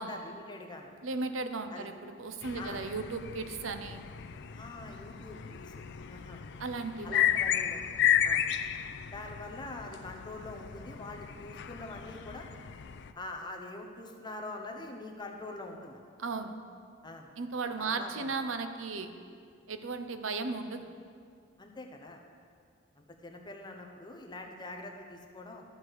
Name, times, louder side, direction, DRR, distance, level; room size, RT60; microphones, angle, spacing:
voice 1, 0.0-0.9 1.7-1.9 2.6-2.8 4.5-5.8 6.1-6.4 7.0-7.8 8.2-8.5 9.1-12.5 13.1-16.0 17.0-17.3 17.8-18.3 21.6-22.2 23.0-25.6, left 2 dB, 25° left, 2 dB, 0.9 m, -44 dB
voice 2, 1.0-4.0 6.6-7.3 16.2-16.5 17.4-19.1 19.7-20.9, right 4 dB, 85° right, 8 dB, 0.7 m, -36 dB
sound 1, 2.4-13.1, left 10 dB, 60° left, 0.4 m, -33 dB
13.0 x 4.8 x 6.4 m, 2.2 s
head